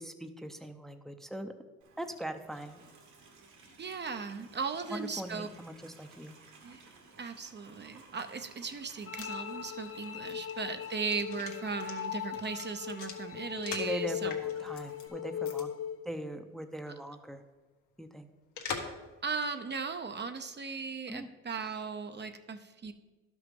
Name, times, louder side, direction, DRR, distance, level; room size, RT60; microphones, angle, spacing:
voice 1, 0.0-1.5 2.0-2.8 4.9-6.3 13.8-15.7 16.0-17.4 18.0-18.3 21.1-21.3, equal, ahead, 7 dB, 0.7 m, -40 dB
Livestock farm animals working animals, 1.8-15.1, right 3 dB, 75° right, 2.1 m, -58 dB
voice 2, 3.8-5.5 6.6-6.8 7.2-14.3 14.6-14.7 18.7-18.9 19.2-22.9, right 5 dB, 35° right, 8 dB, 0.7 m, -37 dB
sound 1, 8.8-14.0 14.3-15.0 15.4-15.6 15.9-16.0 18.6-19.0 19.4-19.5, left 6 dB, 75° left, 1.5 m, -43 dB
sound 2, 9.1-16.0, left 9 dB, 50° left, 0.7 m, -38 dB
11.5 x 6.2 x 5.3 m, 1.2 s
cardioid pair, 90°, 30 cm